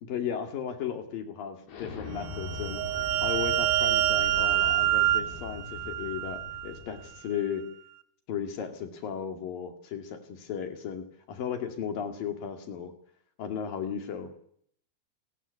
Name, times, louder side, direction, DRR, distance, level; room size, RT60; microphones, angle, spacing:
voice 1, 0.0-2.8 3.2-7.6 8.3-12.9 13.4-14.3, left 8 dB, 65° left, 6 dB, 3.9 m, -35 dB
Explosion, 1.7-7.2, left 4 dB, 80° left, 5.6 m, -41 dB
sound 1, 2.2-6.7, right 14 dB, 75° right, 2.9 m, -27 dB
28.0 x 13.5 x 8.5 m, 0.63 s
omnidirectional pair, 4.6 m